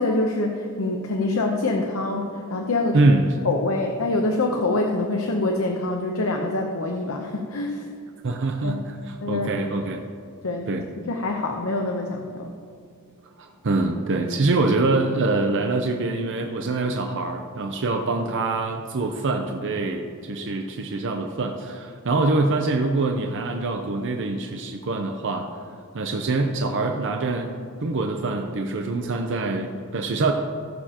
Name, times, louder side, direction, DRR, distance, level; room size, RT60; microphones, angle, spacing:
voice 1, 0.0-3.1 3.4-7.9 8.6-8.8 9.2-9.7 10.4-10.7 11.0-12.5, left 2 dB, 65° left, 2 dB, 0.8 m, -25 dB
voice 2, 8.2-10.0 10.7-10.8 13.4-25.5 25.9-27.5 27.8-30.3, right 2 dB, 55° right, 4 dB, 0.6 m, -24 dB
19.0 x 6.8 x 2.9 m, 2.3 s
head